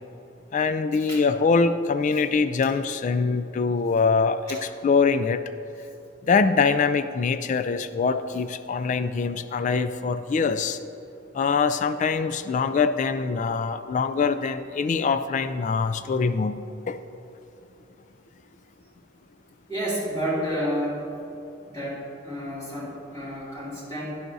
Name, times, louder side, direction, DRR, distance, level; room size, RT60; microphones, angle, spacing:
voice 1, 0.5-4.6 4.8-5.4 6.3-10.8 11.3-16.6 16.9-17.0, left 5 dB, 40° left, 10 dB, 0.3 m, -23 dB
voice 2, 19.7-21.1 21.7-24.1, equal, 20° left, -8 dB, 2.5 m, -30 dB
12.0 x 11.0 x 2.7 m, 2.9 s
head